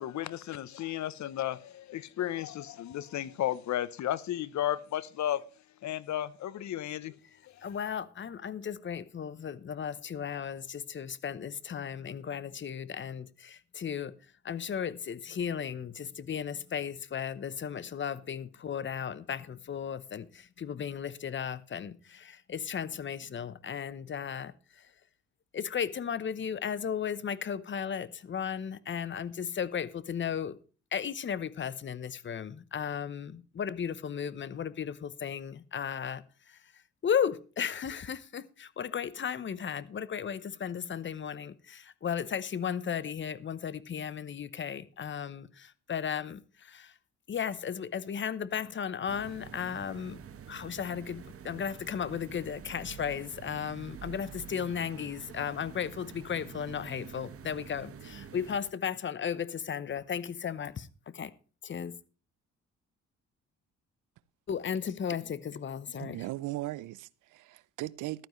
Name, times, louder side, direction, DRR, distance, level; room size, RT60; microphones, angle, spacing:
voice 1, 0.0-5.4 5.8-7.1, left 12 dB, 65° left, 0.8 m, -33 dB
voice 2, 7.6-14.1 14.4-24.9 25.5-30.6 30.9-46.9 47.3-50.2 50.5-61.3 61.6-62.0 64.5-66.2, left 8 dB, 40° left, 0.9 m, -35 dB
sound 1, 49.1-58.6, right 7 dB, 50° right, 1.3 m, -47 dB
voice 3, 65.9-68.3, right 17 dB, 85° right, 0.6 m, -38 dB
14.5 x 12.0 x 3.1 m
cardioid pair, 90°, 30 cm